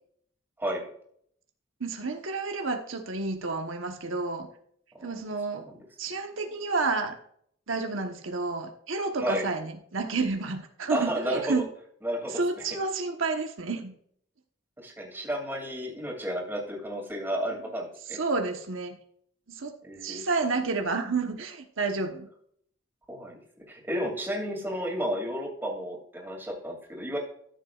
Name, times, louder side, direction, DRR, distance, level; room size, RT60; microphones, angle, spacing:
voice 1, 1.8-4.5 5.0-5.7 6.0-7.1 7.7-11.7 12.4-13.9 18.1-19.0 19.5-19.8 20.0-22.3, right 3 dB, 80° right, 4 dB, 1.1 m, -30 dB
voice 2, 5.5-5.8 9.2-9.5 10.9-11.6 12.0-12.6 14.8-18.2 19.8-20.2 23.1-23.4 23.7-27.2, equal, 10° right, 0 dB, 2.7 m, -32 dB
14.0 x 7.3 x 2.4 m, 0.63 s
head